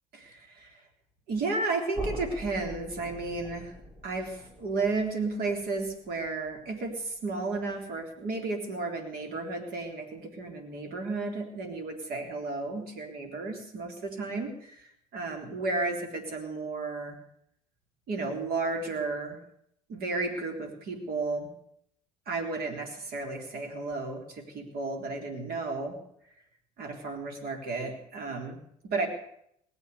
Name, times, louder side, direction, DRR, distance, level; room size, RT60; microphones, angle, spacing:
voice 1, 0.1-0.8 1.3-3.7 4.0-17.2 18.1-19.4 19.9-21.5 22.3-26.0 26.8-29.1, right 3 dB, 55° right, 4 dB, 3.6 m, -33 dB
sound 1, 1.9-7.8, equal, 25° right, 6.4 m, -44 dB
19.0 x 8.3 x 8.1 m, 0.70 s
hypercardioid pair, 60°, 18 cm